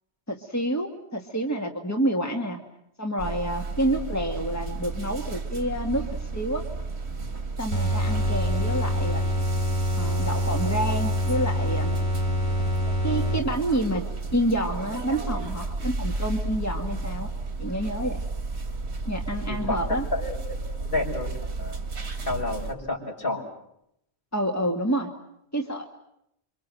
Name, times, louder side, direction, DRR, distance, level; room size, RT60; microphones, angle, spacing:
voice 1, 0.3-2.6 3.0-6.6 7.6-9.2 9.9-12.0 13.0-14.0 14.3-17.3 17.6-18.2 19.1-20.1 24.3-25.1 25.5-25.8, right 1 dB, 15° left, 2 dB, 2.1 m, -28 dB
sound 1, 3.2-22.7, right 3 dB, 75° right, 2.3 m, -33 dB
sound 2, 7.7-13.8, equal, 70° left, 5.8 m, -26 dB
voice 2, 19.5-19.8 20.1-20.4 20.9-21.3 21.6-21.8 22.3-23.5, left 2 dB, 55° left, -1 dB, 6.2 m, -29 dB
28.5 x 25.5 x 7.8 m, 0.78 s
omnidirectional pair, 1.1 m